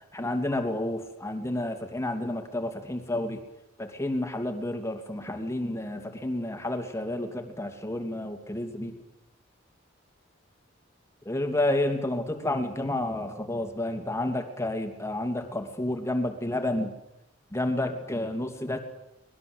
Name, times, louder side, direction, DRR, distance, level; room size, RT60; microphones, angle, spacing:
voice 1, 0.1-3.4 3.8-8.9 11.3-16.9 17.5-18.8, left 1 dB, 15° left, 6 dB, 2.7 m, -30 dB
24.0 x 20.5 x 8.1 m, 0.89 s
head